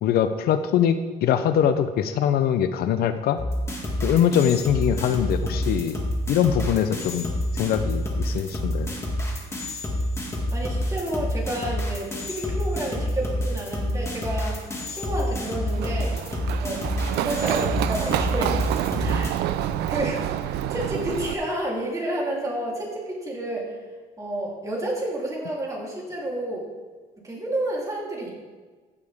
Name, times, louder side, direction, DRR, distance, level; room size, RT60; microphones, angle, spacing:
voice 1, 0.0-3.4 4.0-6.0 6.3-8.9, left 9 dB, 65° left, 10 dB, 0.6 m, -23 dB
sound 1, 3.4-19.3, equal, 15° left, 2.1 m, -28 dB
voice 2, 10.5-14.6 14.9-16.2 16.6-16.9 17.1-18.6 19.0-19.4 19.9-23.7 24.2-26.7 27.2-28.3, right 1 dB, 20° right, -4 dB, 3.2 m, -30 dB
Run, 15.7-21.3, right 11 dB, 80° right, 0.5 m, -27 dB
15.0 x 6.7 x 3.5 m, 1.4 s
cardioid pair, 110°, 17 cm